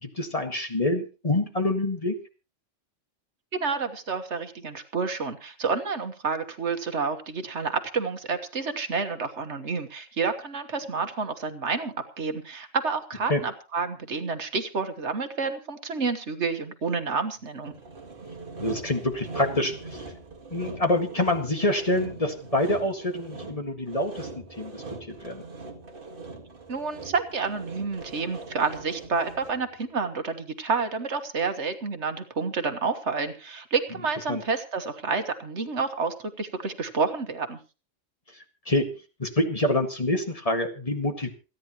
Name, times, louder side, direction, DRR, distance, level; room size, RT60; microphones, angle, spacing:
voice 1, 0.0-2.2 13.3-13.4 18.6-20.1 20.5-25.4 34.3-34.4 38.7-38.9 39.2-41.3, left 1 dB, 30° left, 5 dB, 1.8 m, -26 dB
voice 2, 3.5-17.7 26.7-37.6, right 4 dB, 65° right, 8 dB, 1.6 m, -29 dB
Sawing, 17.7-29.7, right 3 dB, 45° right, 2.1 m, -41 dB
28.0 x 10.0 x 3.0 m, 0.32 s
omnidirectional pair, 1.3 m